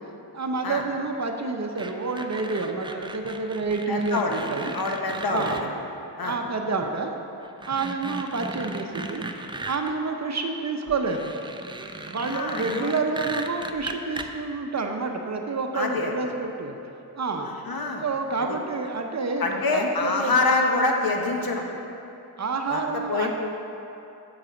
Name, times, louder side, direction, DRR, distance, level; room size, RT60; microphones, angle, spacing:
voice 1, 0.3-4.7 5.3-5.7 6.2-7.1 7.7-9.2 9.6-11.3 12.1-16.8 17.2-17.5 18.0-20.3 22.4-23.3, right 4 dB, 40° right, 4 dB, 0.7 m, -28 dB
sound 1, 1.8-5.6 6.8-6.9 7.4-9.9 10.9-14.3, right 2 dB, 10° right, 0.4 m, -36 dB
voice 2, 3.9-4.4 4.7-5.6 6.2-6.4 12.2-12.9 15.7-16.1 17.4-18.0 19.4-21.6 22.7-23.3, left 3 dB, 55° left, 2 dB, 1.1 m, -26 dB
7.6 x 4.1 x 5.8 m, 2.8 s
cardioid pair, 55°, 44 cm